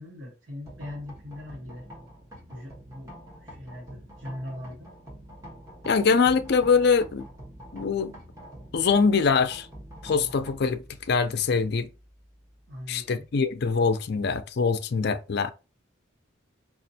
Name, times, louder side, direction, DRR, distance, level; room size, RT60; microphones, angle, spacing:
voice 1, 0.0-1.9 2.5-3.1 3.4-4.9 12.7-13.3, left 1 dB, 70° right, 1.2 m, -40 dB
sound 1, 0.6-14.5, equal, 15° right, 1.1 m, -47 dB
voice 2, 5.8-7.3 7.7-8.1 8.7-9.7 10.0-11.9 12.9-15.5, left 5 dB, 55° left, 0.4 m, -23 dB
5.1 x 2.4 x 2.7 m
head